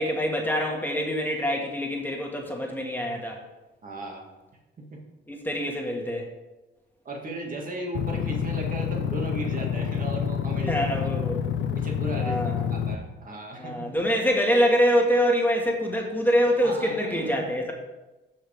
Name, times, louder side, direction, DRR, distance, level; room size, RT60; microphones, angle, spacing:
voice 1, 0.0-3.4 5.3-6.3 10.7-11.4 12.2-12.7 13.6-17.7, equal, 10° left, 0 dB, 1.8 m, -25 dB
voice 2, 3.8-4.2 4.8-5.0 7.0-11.1 11.7-14.0 16.6-17.5, right 2 dB, 45° right, 0 dB, 2.0 m, -36 dB
sound 1, 7.9-12.9, left 8 dB, 70° left, 0.7 m, -28 dB
15.0 x 5.9 x 3.5 m, 1.1 s
cardioid pair, 90°, 20 cm